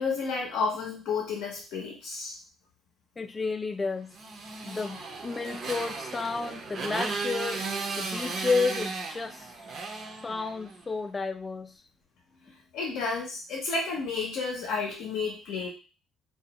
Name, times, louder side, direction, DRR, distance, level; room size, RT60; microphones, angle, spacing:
voice 1, 0.0-2.4 12.5-15.7, left 4 dB, 80° left, 0 dB, 0.5 m, -31 dB
voice 2, 3.2-4.1 4.6-9.5 10.2-11.7, left 4 dB, 25° left, 8 dB, 0.3 m, -31 dB
Motorcycle, 4.1-10.8, right 4 dB, 55° right, 0.5 m, -35 dB
2.2 x 2.1 x 2.8 m, 0.34 s
supercardioid pair, 75°, 0 cm